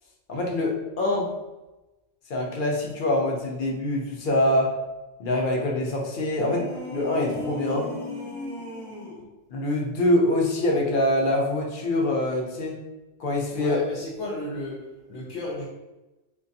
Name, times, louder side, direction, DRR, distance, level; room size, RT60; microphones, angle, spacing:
voice 1, 0.3-1.3 2.3-4.8 5.2-7.9 9.5-12.8 13.2-13.8, left 1 dB, 60° left, 0 dB, 0.6 m, -24 dB
sound 1, 6.3-9.3, left 1 dB, 30° right, 0.5 m, -35 dB
voice 2, 13.5-15.7, left 2 dB, 90° left, -6 dB, 0.9 m, -33 dB
2.4 x 2.2 x 2.6 m, 1.0 s
omnidirectional pair, 1.1 m